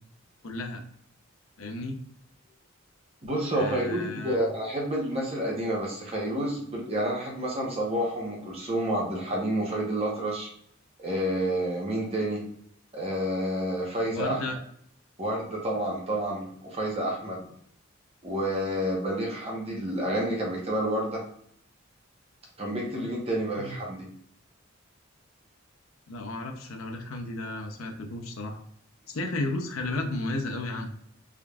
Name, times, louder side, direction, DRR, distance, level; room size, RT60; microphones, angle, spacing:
voice 1, 0.4-0.8 1.6-2.0 3.5-4.5 14.1-14.6 23.6-23.8 26.1-28.6 29.1-30.9, left 2 dB, 85° left, 3 dB, 0.6 m, -33 dB
voice 2, 3.2-10.5 11.0-12.4 12.9-14.4 15.2-17.4 18.2-21.2 22.6-24.0, right 1 dB, 30° right, -3 dB, 1.0 m, -29 dB
3.6 x 3.5 x 2.3 m, 0.68 s
head